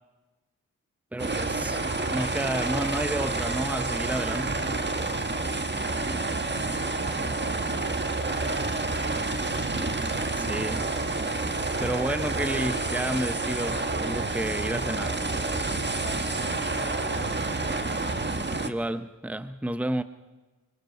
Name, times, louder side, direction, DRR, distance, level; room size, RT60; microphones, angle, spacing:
voice 1, 1.1-4.8 10.3-10.9 11.8-15.2 18.6-20.0, right 1 dB, 5° right, 0.9 m, -31 dB
sound 1, 1.2-18.7, right 3 dB, 30° right, 1.5 m, -29 dB
voice 2, 6.3-9.6 15.9-17.9, right 4 dB, 80° right, 4.6 m, -46 dB
sound 2, 11.8-17.7, left 5 dB, 80° left, 3.5 m, -45 dB
26.5 x 26.0 x 4.6 m
cardioid pair, 60°, 35 cm